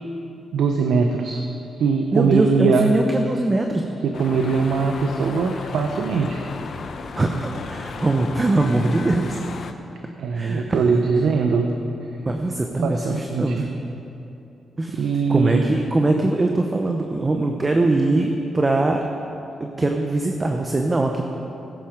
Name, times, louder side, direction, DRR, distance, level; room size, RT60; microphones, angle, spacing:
voice 1, 0.5-1.4 1.8-2.9 4.0-6.5 10.2-11.7 12.8-13.7 14.9-15.7, right 5 dB, 85° right, 4 dB, 0.8 m, -21 dB
voice 2, 2.1-3.8 7.1-9.4 10.3-11.0 12.2-13.7 14.8-19.0 19.6-21.2, right 2 dB, 25° right, 3 dB, 0.9 m, -22 dB
sound 1, 4.1-9.7, left 4 dB, 60° left, 0.8 m, -35 dB
16.0 x 9.1 x 5.2 m, 2.8 s
cardioid pair, 100°, 0 cm